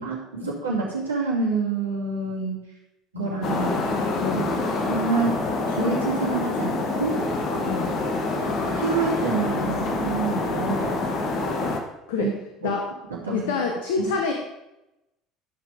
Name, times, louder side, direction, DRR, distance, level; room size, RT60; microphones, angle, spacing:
voice 1, 0.0-2.7 3.1-3.8 4.3-4.5 4.9-7.2 8.8-10.9 11.4-11.5 12.2-12.3 12.6-12.7 13.1-13.5 14.0-14.1, right 4 dB, 85° right, -5 dB, 2.6 m, -27 dB
sound 1, 3.4-11.8, left 3 dB, 50° left, 1.7 m, -26 dB
voice 2, 7.6-8.0 12.1-12.3 12.6-12.9 13.3-14.3, left 5 dB, 70° left, 3 dB, 1.1 m, -27 dB
12.5 x 6.1 x 5.1 m, 0.93 s
hypercardioid pair, 65°, 0 cm